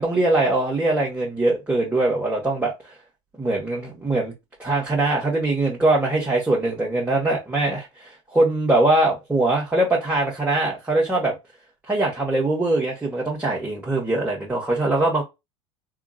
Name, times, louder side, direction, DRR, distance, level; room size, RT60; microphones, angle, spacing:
voice 1, 0.0-2.7 3.4-4.3 4.6-11.3 11.9-15.2, right 2 dB, 10° right, 1.5 m, -22 dB
3.6 x 2.4 x 2.4 m
hypercardioid pair, 90°, 16 cm